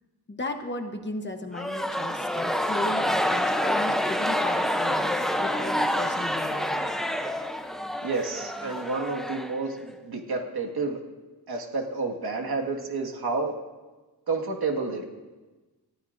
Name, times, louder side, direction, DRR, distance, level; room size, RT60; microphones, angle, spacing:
voice 1, 0.3-6.9, left 2 dB, 30° left, 5 dB, 1.0 m, -36 dB
sound 1, 1.5-10.0, equal, ahead, 0.6 m, -27 dB
voice 2, 8.0-11.0 11.5-13.5 14.3-15.0, right 3 dB, 70° right, 2 dB, 1.8 m, -30 dB
28.5 x 14.5 x 2.6 m, 1.2 s
wide cardioid pair, 180°, 40 cm